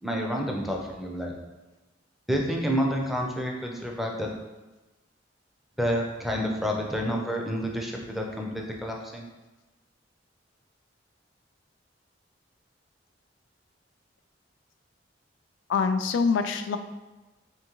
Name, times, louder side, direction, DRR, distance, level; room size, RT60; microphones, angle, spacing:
voice 1, 0.0-1.3 2.3-4.3 5.8-9.2, equal, ahead, 0 dB, 0.4 m, -29 dB
voice 2, 15.7-16.8, left 5 dB, 90° left, 9 dB, 0.3 m, -24 dB
3.6 x 3.5 x 2.9 m, 1.1 s
head